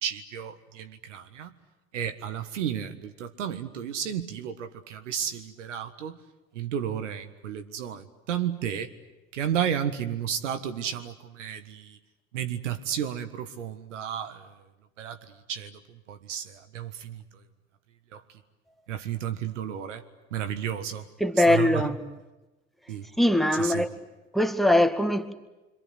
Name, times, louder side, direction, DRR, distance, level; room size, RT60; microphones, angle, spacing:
voice 1, 0.0-1.5 1.9-6.2 6.6-8.9 9.3-12.0 12.3-14.4 15.0-15.2 15.5-15.7 16.1-17.2 18.1-18.2 18.9-20.0 20.3-21.0 21.5-21.9 22.9-23.1 23.6-23.8, right 9 dB, 80° right, 1.6 m, -32 dB
voice 2, 21.2-22.0 23.2-23.9 24.3-25.3, left 1 dB, ahead, 2.0 m, -22 dB
26.0 x 26.0 x 7.9 m
hypercardioid pair, 65°, 36 cm